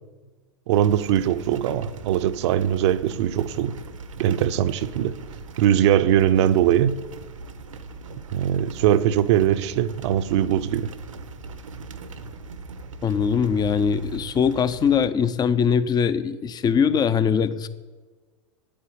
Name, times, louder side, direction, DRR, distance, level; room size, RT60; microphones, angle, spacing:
voice 1, 0.7-3.7 4.2-5.1 5.6-7.0 8.3-10.9, right 11 dB, 60° right, 0.8 m, -21 dB
sound 1, 0.7-15.1, right 3 dB, 90° right, 1.2 m, -40 dB
voice 2, 13.0-17.7, left 7 dB, 25° left, 0.8 m, -21 dB
9.2 x 8.7 x 9.8 m
hypercardioid pair, 105°, 16 cm